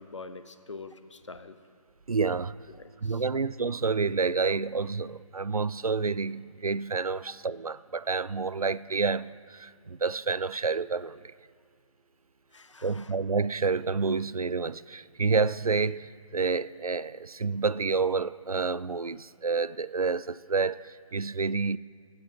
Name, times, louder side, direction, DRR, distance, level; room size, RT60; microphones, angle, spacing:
voice 1, 0.0-1.6 2.8-3.4 12.5-13.1, left 4 dB, 55° left, 0.9 m, -45 dB
voice 2, 2.1-2.6 3.0-11.3 12.8-21.8, right 4 dB, 90° right, 0.4 m, -29 dB
19.0 x 8.9 x 4.2 m
figure-of-eight pair, 150°, 18 cm